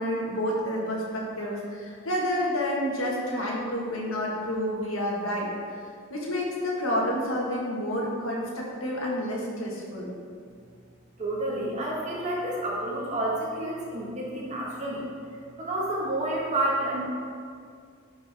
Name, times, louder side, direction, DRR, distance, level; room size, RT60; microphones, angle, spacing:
voice 1, 0.0-5.8 6.1-10.1, equal, 75° left, -3 dB, 1.7 m, -29 dB
voice 2, 11.2-15.1 15.6-17.0, right 1 dB, 35° right, -4 dB, 1.8 m, -29 dB
11.5 x 5.3 x 3.6 m, 2.2 s
head